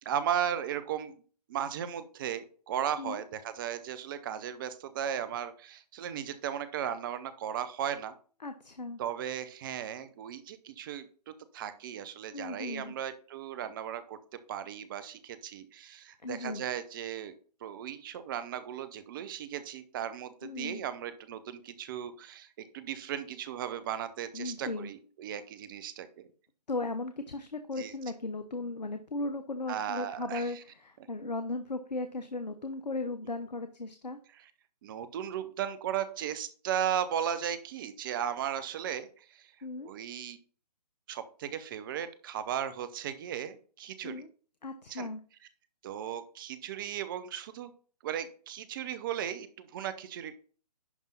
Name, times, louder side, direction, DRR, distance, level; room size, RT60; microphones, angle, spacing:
voice 1, 0.0-1.2 1.5-8.1 9.0-14.2 14.5-17.3 17.6-22.5 22.7-26.3 27.8-27.9 29.7-30.5 34.8-39.5 39.8-40.4 41.1-44.3 44.9-45.1 45.8-47.7 48.0-50.3, right 9 dB, 30° right, 13 dB, 0.9 m, -36 dB
voice 2, 8.4-9.0 12.3-13.0 16.2-16.6 20.4-20.8 24.3-24.9 26.7-34.2 39.6-39.9 44.0-44.3 44.6-45.2, left 2 dB, 85° left, 8 dB, 1.0 m, -36 dB
11.0 x 3.6 x 5.6 m, 0.42 s
figure-of-eight pair, 140°, 21 cm